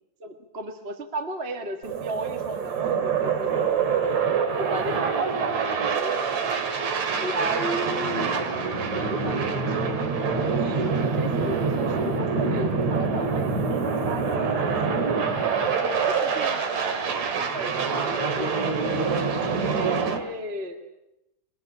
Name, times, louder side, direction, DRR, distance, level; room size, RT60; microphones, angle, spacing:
voice 1, 0.2-4.1 4.6-6.3 7.2-10.1 10.5-10.9 11.1-15.2 15.6-20.8, right 1 dB, 30° right, 5 dB, 1.4 m, -35 dB
sound 1, 1.8-20.2, right 5 dB, 60° right, 3.3 m, -25 dB
22.0 x 20.5 x 10.0 m, 0.92 s
omnidirectional pair, 3.6 m